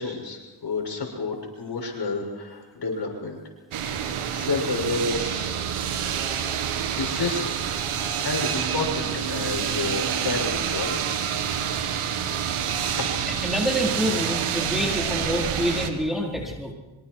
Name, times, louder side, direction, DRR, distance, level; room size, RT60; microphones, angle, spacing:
voice 1, 0.0-3.4 3.9-4.0 4.3-5.6 7.0-7.5 8.2-11.2 12.9-13.1, left 3 dB, 55° left, 1 dB, 7.1 m, -30 dB
sound 1, 3.7-15.9, right 8 dB, 85° right, 1.9 m, -27 dB
voice 2, 13.4-16.7, equal, ahead, -1 dB, 4.5 m, -26 dB
26.0 x 24.5 x 4.8 m, 1.2 s
cardioid pair, 55°, 49 cm